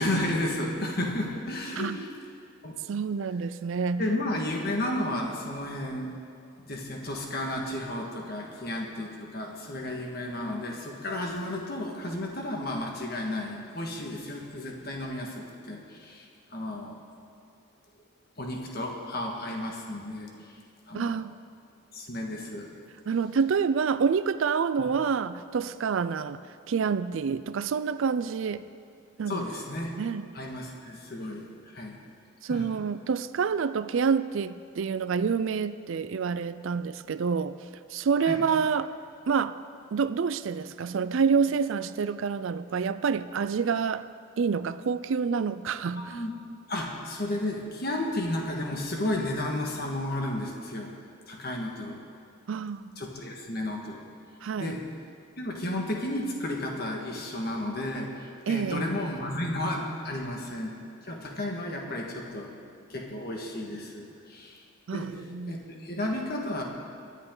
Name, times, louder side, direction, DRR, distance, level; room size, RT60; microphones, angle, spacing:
voice 1, 0.0-2.1 2.6-2.8 4.0-6.2 6.6-17.0 18.4-20.3 20.9-21.2 21.9-22.7 24.8-24.9 29.3-30.0 30.3-32.0 32.5-32.7 38.2-38.4 46.0-46.3 46.7-51.0 51.3-52.0 53.0-54.1 54.6-54.9 55.4-62.5 62.9-64.6 64.9-65.2 65.5-66.6, left 1 dB, 45° left, 1 dB, 1.7 m, -33 dB
voice 2, 2.9-4.1 20.9-21.3 23.1-26.4 26.7-28.7 29.2-29.4 30.0-30.3 32.4-37.6 37.9-38.9 39.3-39.5 39.9-44.1 44.4-46.2 52.5-52.8 54.4-54.8 58.5-58.9 64.9-65.6, right 6 dB, 65° right, 14 dB, 0.4 m, -27 dB
22.5 x 10.0 x 3.9 m, 2.4 s
head